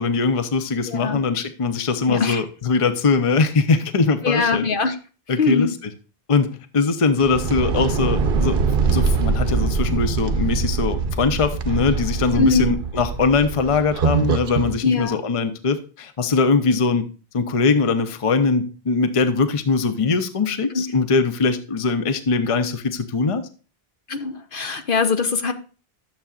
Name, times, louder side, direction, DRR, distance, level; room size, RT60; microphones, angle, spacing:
voice 1, 0.0-4.7 5.3-5.9 6.3-8.6 8.9-17.1 17.3-23.5, left 4 dB, 35° left, 10 dB, 0.7 m, -21 dB
voice 2, 0.9-1.2 2.1-2.4 4.2-5.0 5.4-5.7 12.4-12.7 14.8-15.2 20.7-20.8 24.1-25.5, left 4 dB, 60° left, 8 dB, 0.9 m, -21 dB
sound 1, 7.2-14.8, right 5 dB, 60° right, 0.9 m, -23 dB
12.0 x 7.0 x 2.4 m, 0.35 s
omnidirectional pair, 1.0 m